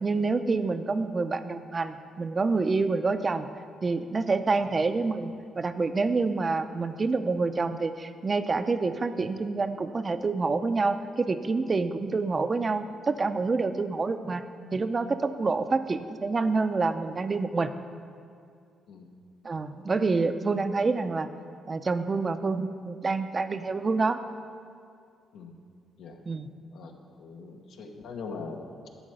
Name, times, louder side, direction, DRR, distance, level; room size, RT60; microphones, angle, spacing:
voice 1, 0.0-3.5 3.8-14.4 14.7-17.7 19.4-21.3 21.7-24.2 26.3-26.5, right 3 dB, 30° right, 10 dB, 0.5 m, -27 dB
voice 2, 27.2-28.9, left 4 dB, 75° left, 3 dB, 1.1 m, -41 dB
11.5 x 4.5 x 7.8 m, 2.3 s
cardioid pair, 90°, 0 cm